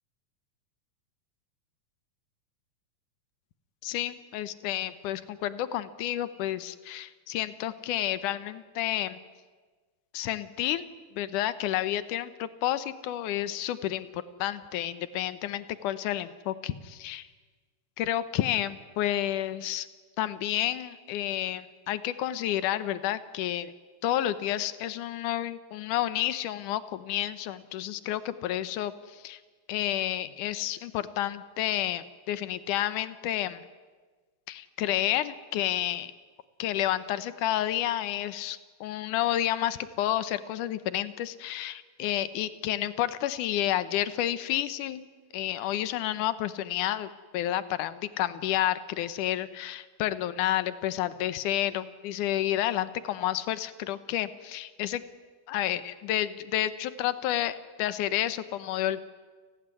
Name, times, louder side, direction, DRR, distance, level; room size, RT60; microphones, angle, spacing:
voice 1, 3.8-9.2 10.1-10.9 11.2-17.3 18.0-19.9 20.2-23.7 24.0-29.4 29.7-33.6 34.5-36.1 36.6-45.1 45.3-55.0 55.5-59.0, left 12 dB, 85° left, 13 dB, 2.5 m, -30 dB
29.5 x 19.0 x 9.8 m, 1.4 s
omnidirectional pair, 3.5 m